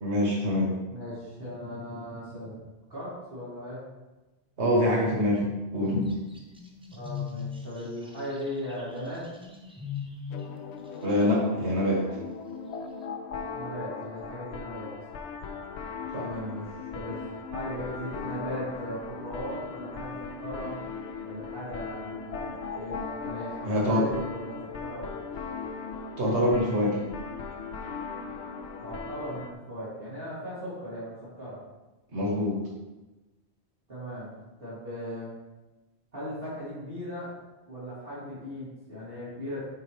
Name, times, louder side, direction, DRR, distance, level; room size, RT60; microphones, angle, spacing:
voice 1, 0.0-0.7 4.6-6.1 11.0-12.0 16.1-16.3 23.6-24.0 26.2-27.0 32.1-32.6, left 1 dB, 90° right, -4 dB, 2.0 m, -25 dB
voice 2, 0.9-2.6 2.9-3.8 7.0-9.3 13.5-14.9 16.2-16.6 16.9-20.8 21.2-25.1 28.8-31.6 33.9-34.3 34.6-35.3 36.1-37.3 37.7-39.6, equal, 60° right, -11 dB, 3.1 m, -38 dB
sound 1, 6.1-10.4, left 7 dB, 5° right, 0.7 m, -39 dB
sound 2, 10.3-29.5, left 5 dB, 85° left, 0.9 m, -38 dB
9.7 x 4.7 x 3.4 m, 1.1 s
omnidirectional pair, 1.1 m